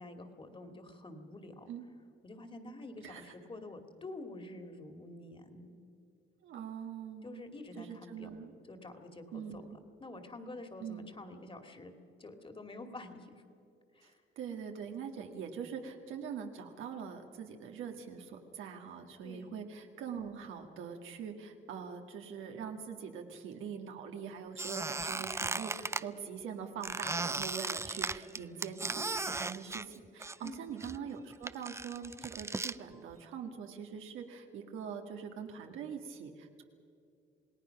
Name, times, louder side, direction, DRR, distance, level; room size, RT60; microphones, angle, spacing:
voice 1, 0.0-1.7 2.2-5.8 7.2-8.3 8.7-11.9 12.2-13.4 13.9-14.2 19.2-19.5 30.4-30.6 32.2-32.3, left 2 dB, 25° left, 6 dB, 2.4 m, -48 dB
voice 2, 6.4-7.4 7.8-8.5 9.3-9.8 10.8-11.1 14.0-14.1 14.4-36.6, right 7 dB, 85° right, 3 dB, 1.9 m, -43 dB
Squeak, 24.6-26.0 26.8-30.5 30.8-32.8, right 3 dB, 15° right, 0.5 m, -37 dB
28.0 x 18.5 x 5.9 m, 2.6 s
cardioid pair, 90°, 20 cm